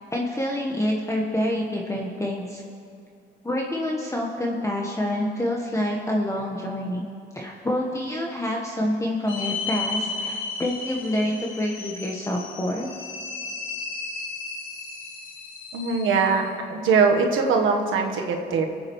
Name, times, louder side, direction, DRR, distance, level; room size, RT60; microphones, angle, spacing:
voice 1, 0.1-2.6 3.4-7.1 7.3-12.9, left 1 dB, 15° left, -1 dB, 1.3 m, -27 dB
sound 1, 9.3-16.4, left 4 dB, 85° left, 1.6 m, -34 dB
voice 2, 15.7-18.7, right 5 dB, 80° right, 2 dB, 1.3 m, -22 dB
25.0 x 8.6 x 3.2 m, 2.4 s
cardioid pair, 90°, 20 cm